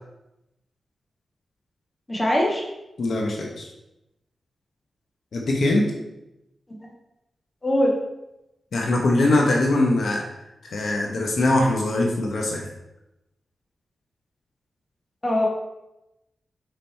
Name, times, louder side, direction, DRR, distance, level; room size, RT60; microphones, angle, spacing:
voice 1, 2.1-2.6 7.6-7.9 15.2-15.5, left 1 dB, 20° left, -1 dB, 1.6 m, -21 dB
voice 2, 3.0-3.7 5.3-5.9 8.7-10.2 10.6-12.7, left 2 dB, 70° left, 0 dB, 1.0 m, -22 dB
5.6 x 5.0 x 4.3 m, 0.92 s
wide cardioid pair, 95°, 0 cm